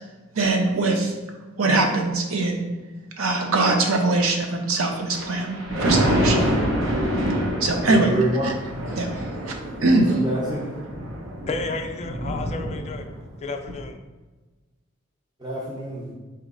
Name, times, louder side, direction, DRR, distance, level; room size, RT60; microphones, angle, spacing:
voice 1, 0.3-1.1 1.6-2.7 3.2-5.6 5.8-6.4 7.6-8.1 8.4-8.5 9.0-9.1 9.5-9.6 9.8-10.1, right 2 dB, 90° right, 3 dB, 0.7 m, -22 dB
Thunder, 5.0-13.3 13.7-13.8, equal, 70° right, 1.0 m, -26 dB
voice 2, 7.7-8.5 10.1-10.7 15.4-16.1, right 1 dB, 20° right, -6 dB, 0.7 m, -27 dB
voice 3, 11.5-13.1 13.4-14.0, left 3 dB, 30° left, 5 dB, 0.4 m, -31 dB
4.4 x 3.1 x 3.8 m, 1.2 s
head